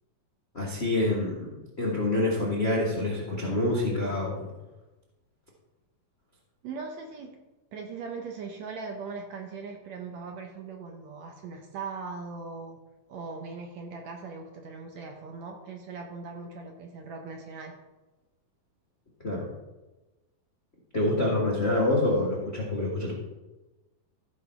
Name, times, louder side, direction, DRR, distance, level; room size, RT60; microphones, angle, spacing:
voice 1, 0.5-4.5 19.2-19.5 20.9-23.1, left 2 dB, 80° left, -3 dB, 0.5 m, -27 dB
voice 2, 6.6-7.4 7.7-12.8 13.1-17.8, right 4 dB, 70° right, 2 dB, 1.8 m, -39 dB
14.0 x 4.8 x 6.0 m, 1.1 s
omnidirectional pair, 4.2 m